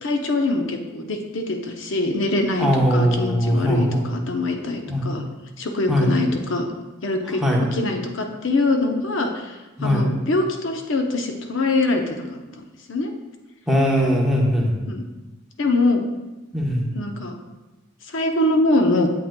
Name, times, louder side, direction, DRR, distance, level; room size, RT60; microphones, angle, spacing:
voice 1, 0.0-5.2 5.6-6.7 7.0-7.4 7.7-13.1 14.9-15.0 15.6-16.0 16.9-17.3 18.1-19.1, left 2 dB, 65° left, 4 dB, 0.7 m, -23 dB
voice 2, 2.6-4.0 4.9-5.0 5.9-6.1 7.4-7.6 9.8-10.1 13.7-14.7 16.5-16.8, equal, ahead, -3 dB, 0.9 m, -20 dB
8.5 x 7.7 x 2.2 m, 1.1 s
head